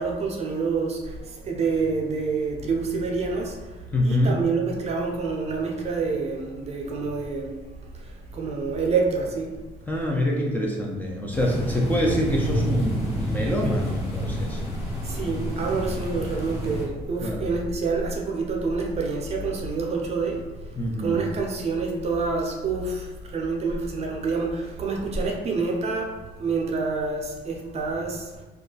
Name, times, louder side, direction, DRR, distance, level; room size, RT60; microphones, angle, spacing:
voice 1, 0.0-7.6 7.9-9.5 15.0-28.4, right 4 dB, 40° right, 0 dB, 0.6 m, -27 dB
voice 2, 3.9-4.4 9.9-14.6 17.2-17.5 20.8-21.2, left 1 dB, 10° left, -2 dB, 0.4 m, -25 dB
sound 1, 11.3-16.8, equal, 35° left, 1.0 m, -29 dB
2.4 x 2.2 x 3.8 m, 1.2 s
cardioid pair, 110°, 17 cm